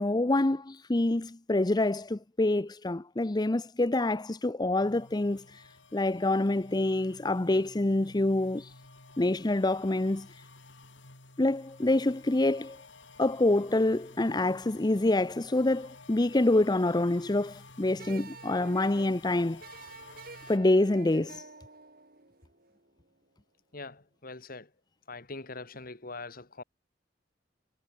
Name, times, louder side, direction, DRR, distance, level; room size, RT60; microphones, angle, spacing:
voice 1, 0.0-8.7 9.2-10.3 11.4-12.8 13.2-19.6 20.5-21.5, left 2 dB, 20° left, 0.6 m, -26 dB
sound 1, 4.8-20.6, left 3 dB, 75° left, 4.0 m, -53 dB
sound 2, 18.0-23.1, right 3 dB, 55° right, 6.8 m, -49 dB
voice 2, 23.7-24.7 25.1-26.6, left 3 dB, 50° left, 2.3 m, -42 dB
head